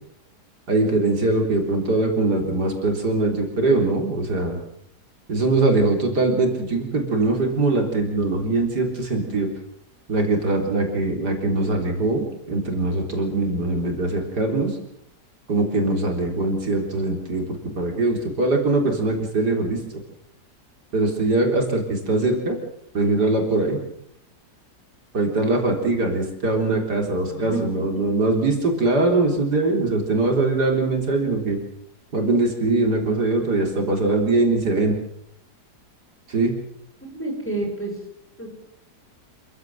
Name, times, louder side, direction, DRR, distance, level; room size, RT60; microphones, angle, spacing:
voice 1, 0.7-4.6 5.3-9.5 10.1-14.8 15.5-19.8 20.9-22.6 22.9-23.8 25.1-31.6 32.1-35.0 36.3-36.5, right 2 dB, 75° right, 2 dB, 4.3 m, -22 dB
voice 2, 27.3-27.8 37.0-37.9 38.4-38.5, right 2 dB, 5° left, 0 dB, 6.8 m, -29 dB
27.0 x 15.5 x 7.7 m, 0.73 s
omnidirectional pair, 1.8 m